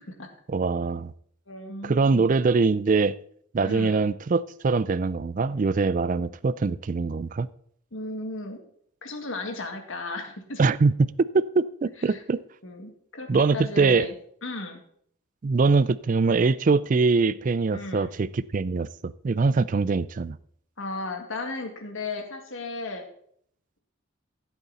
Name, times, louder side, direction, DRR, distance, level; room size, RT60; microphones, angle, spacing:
voice 1, 0.5-1.1 1.8-3.1 3.5-7.5 10.6-12.4 13.3-14.1 15.4-20.4, right 4 dB, 40° right, 18 dB, 0.4 m, -23 dB
voice 2, 1.5-2.3 3.6-4.1 7.9-8.6 9.0-10.6 12.0-12.2 12.6-14.1 14.4-14.8 17.7-18.1 20.8-23.0, left 2 dB, 70° left, 4 dB, 2.2 m, -35 dB
15.0 x 8.2 x 4.2 m, 0.64 s
head